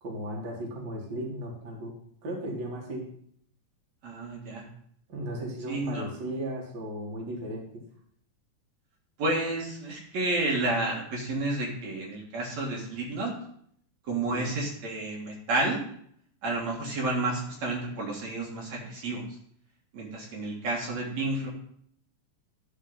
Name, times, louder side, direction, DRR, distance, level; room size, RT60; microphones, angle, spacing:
voice 1, 0.0-1.9 2.2-3.0 5.1-7.7 14.3-14.6, right 1 dB, 35° right, -2 dB, 2.1 m, -36 dB
voice 2, 4.0-4.7 5.7-6.1 9.2-13.3 14.1-15.8 16.4-19.2 19.9-21.5, right 2 dB, 60° right, -2 dB, 2.7 m, -30 dB
11.5 x 4.7 x 5.4 m, 0.66 s
omnidirectional pair, 3.8 m